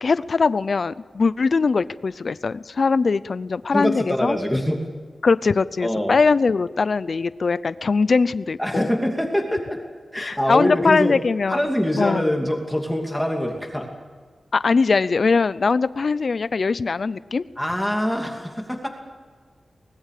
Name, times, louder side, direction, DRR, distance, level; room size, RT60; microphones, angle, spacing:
voice 1, 0.0-4.4 5.2-8.9 10.2-11.6 12.0-12.2 14.5-17.4, left 4 dB, 50° left, 16 dB, 0.6 m, -21 dB
voice 2, 3.7-4.8 5.8-6.1 8.6-9.8 10.1-11.2 11.5-13.9 17.6-18.9, equal, 5° left, 2 dB, 2.7 m, -24 dB
24.0 x 20.0 x 6.7 m, 1.5 s
wide cardioid pair, 145°, 0 cm